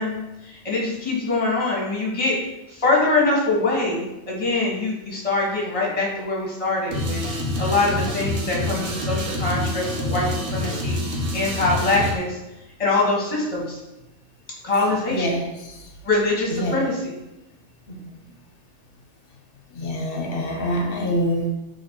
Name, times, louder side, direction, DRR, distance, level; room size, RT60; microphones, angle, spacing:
voice 1, 0.0-2.4 2.7-7.2 7.6-11.0 11.3-12.4 12.8-13.8 14.6-15.3 16.0-17.0, left 2 dB, 30° left, -4 dB, 1.2 m, -23 dB
sound 1, 6.9-12.1, left 1 dB, 85° right, 1.1 m, -27 dB
voice 2, 15.1-15.9 16.5-16.8 17.9-18.0 19.7-21.5, equal, 55° left, 1 dB, 0.9 m, -26 dB
4.1 x 2.8 x 4.3 m, 0.94 s
omnidirectional pair, 1.2 m